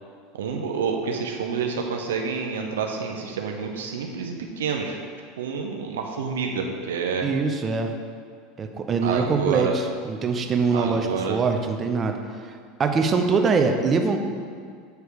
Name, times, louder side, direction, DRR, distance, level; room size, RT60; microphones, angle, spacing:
voice 1, 0.3-5.0 5.4-7.3 9.0-9.8 10.7-11.4, right 5 dB, 90° right, 2 dB, 0.6 m, -28 dB
voice 2, 7.2-7.9 8.6-12.2 12.4-14.2, right 4 dB, 30° right, 5 dB, 0.6 m, -23 dB
8.1 x 3.3 x 4.7 m, 2.1 s
hypercardioid pair, 100°, 0 cm